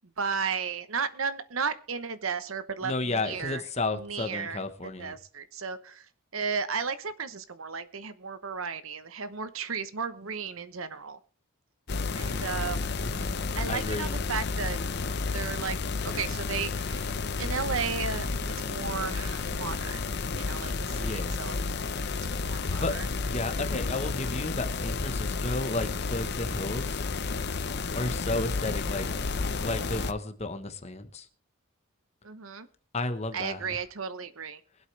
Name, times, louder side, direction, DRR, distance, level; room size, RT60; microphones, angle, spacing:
voice 1, 0.2-3.6 3.9-4.6 5.0-11.2 12.1-12.9 13.6-14.8 15.3-17.1 17.4-18.3 18.6-20.0 20.3-21.6 22.3-23.0 32.2-32.7 33.3-34.6, right 5 dB, 75° right, 1.0 m, -34 dB
voice 2, 2.8-5.2 13.0-13.4 13.7-14.1 20.9-21.4 22.8-22.9 23.2-27.0 27.9-29.1 29.6-31.3 32.9-33.8, left 2 dB, 30° left, 1.1 m, -33 dB
sound 1, 11.9-30.1, left 4 dB, 50° left, 0.7 m, -31 dB
23.0 x 8.1 x 3.3 m
head